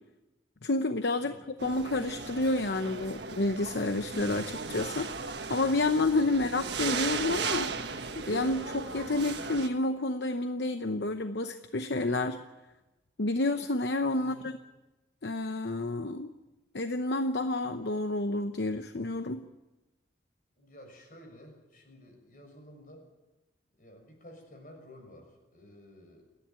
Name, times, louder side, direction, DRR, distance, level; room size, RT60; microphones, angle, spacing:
voice 1, 0.6-1.3 1.6-7.7 8.2-12.4 13.2-14.5 15.2-16.3 16.7-19.4, left 2 dB, 70° left, 8 dB, 0.8 m, -29 dB
sound 1, 1.6-9.7, right 5 dB, 70° right, 1.5 m, -36 dB
voice 2, 14.2-14.5 20.6-23.1 23.8-26.3, left 1 dB, 45° left, 3 dB, 6.2 m, -53 dB
29.0 x 11.0 x 8.9 m, 1.1 s
head